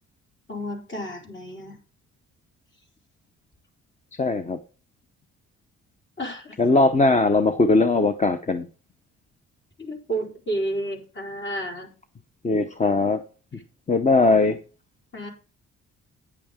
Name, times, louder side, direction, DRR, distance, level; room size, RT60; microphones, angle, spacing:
voice 1, 0.5-1.8 6.2-6.6 9.8-11.9 15.1-15.3, right 1 dB, 40° left, 4.4 m, -31 dB
voice 2, 4.2-4.6 6.6-8.6 12.4-13.2 13.9-14.6, left 3 dB, 25° left, 0.8 m, -19 dB
9.8 x 8.5 x 3.6 m
cardioid pair, 90°, 30 cm